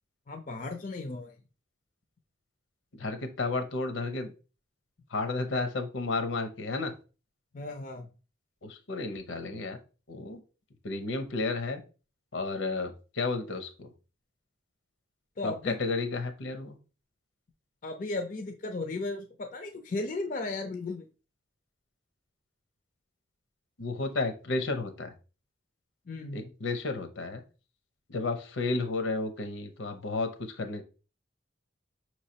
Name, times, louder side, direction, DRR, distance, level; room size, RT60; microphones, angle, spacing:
voice 1, 0.3-1.3 7.5-8.1 15.4-15.7 17.8-21.1 26.1-26.5, left 2 dB, 45° left, 5 dB, 0.4 m, -35 dB
voice 2, 3.0-4.3 5.1-6.9 8.6-9.8 10.1-10.4 10.8-11.8 12.3-13.9 15.4-16.7 23.8-25.1 26.3-27.4 28.1-30.8, left 3 dB, 80° left, 7 dB, 0.8 m, -32 dB
5.5 x 3.1 x 2.8 m, 0.34 s
head